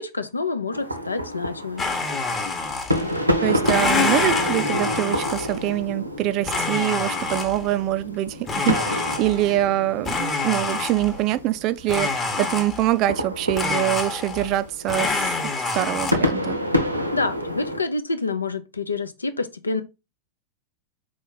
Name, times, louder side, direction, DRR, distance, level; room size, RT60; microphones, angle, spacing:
voice 1, 0.0-1.9 17.1-19.8, left 3 dB, 80° left, 0.6 m, -27 dB
sound 1, 0.7-17.8, left 1 dB, 85° right, 0.8 m, -29 dB
Domestic sounds home sounds, 1.8-3.2 3.6-5.7 6.4-7.7 8.5-9.6 10.0-11.3 11.9-13.0 13.5-14.6 14.9-16.1, left 3 dB, 20° left, 0.9 m, -26 dB
voice 2, 3.4-16.6, right 15 dB, 40° right, 0.3 m, -24 dB
4.2 x 3.1 x 3.9 m
figure-of-eight pair, 90°, 0 cm